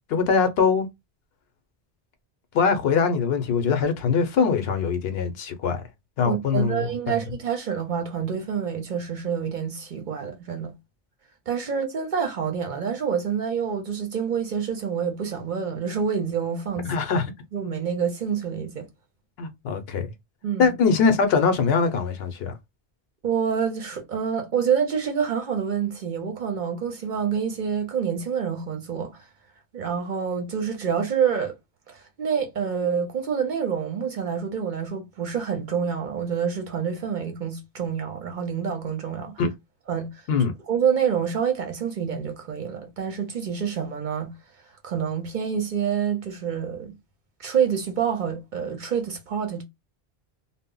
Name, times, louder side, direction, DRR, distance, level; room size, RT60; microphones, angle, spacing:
voice 1, 0.1-0.9 2.5-5.8 6.2-7.1 16.9-17.3 19.4-20.1 20.6-22.5 39.4-39.5 40.3-40.5, left 5 dB, 70° left, 0.8 m, -22 dB
voice 2, 6.2-10.7 11.5-16.9 17.5-18.9 20.4-20.7 23.2-29.3 29.7-31.5 31.9-39.3 39.9-40.2 40.7-44.3 44.8-46.9 47.4-49.6, right 7 dB, 55° right, 0.7 m, -27 dB
2.0 x 2.0 x 3.7 m
omnidirectional pair, 1.1 m